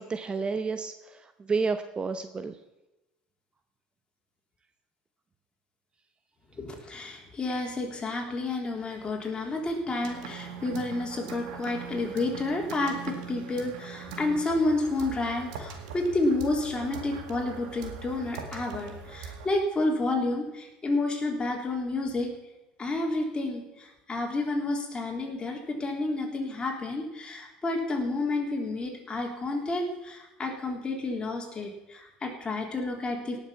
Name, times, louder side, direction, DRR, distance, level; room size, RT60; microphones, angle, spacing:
voice 1, 0.0-2.6, right 4 dB, 25° right, 9 dB, 0.8 m, -31 dB
voice 2, 6.6-22.3 22.8-33.4, left 2 dB, 25° left, 1 dB, 3.4 m, -30 dB
sound 1, 10.0-19.5, right 5 dB, 75° right, 1.8 m, -41 dB
18.0 x 6.9 x 5.7 m, 1.0 s
hypercardioid pair, 75°, 4 cm